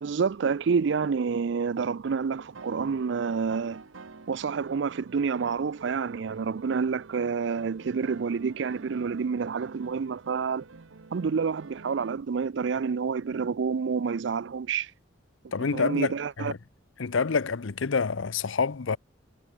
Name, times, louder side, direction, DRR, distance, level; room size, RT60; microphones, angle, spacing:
voice 1, 0.0-3.8 4.3-10.6 11.1-14.9 15.7-16.5, right 5 dB, 65° right, 0.4 m, -28 dB
sound 1, 2.2-12.1, right 4 dB, 85° right, 0.9 m, -49 dB
voice 2, 15.5-16.6 17.0-19.0, left 5 dB, 85° left, 0.7 m, -27 dB
head